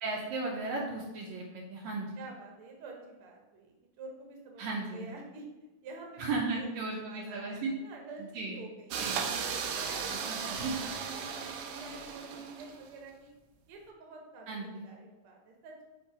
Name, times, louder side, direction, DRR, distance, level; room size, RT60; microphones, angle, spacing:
voice 1, 0.0-2.1 4.6-5.1 6.2-7.7 8.4-8.6 9.0-9.2 10.3-10.7 14.5-14.8, right 3 dB, 70° right, -2 dB, 2.0 m, -35 dB
voice 2, 2.2-5.5 5.8-9.2 9.8-13.3 13.7-15.9, right 3 dB, 55° right, 0 dB, 1.8 m, -49 dB
sound 1, 8.9-12.9, right 6 dB, 90° right, 2.2 m, -36 dB
7.2 x 3.9 x 4.9 m, 1.1 s
omnidirectional pair, 3.5 m